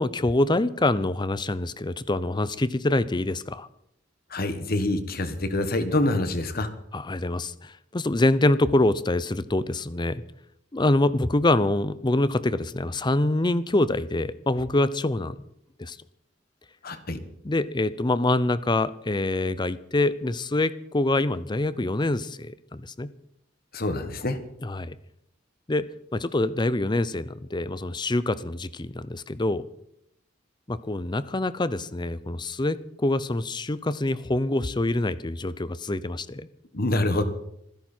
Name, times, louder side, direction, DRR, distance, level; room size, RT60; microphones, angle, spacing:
voice 1, 0.0-3.7 6.9-10.2 10.7-15.4 15.8-16.0 17.4-23.1 24.6-25.0 25.7-25.9 26.1-29.7 30.7-36.5, left 2 dB, 25° left, 16 dB, 0.7 m, -25 dB
voice 2, 4.3-6.7 16.8-17.2 23.7-24.4 36.7-37.2, left 2 dB, 50° left, 9 dB, 1.6 m, -26 dB
25.5 x 10.5 x 4.5 m, 0.76 s
head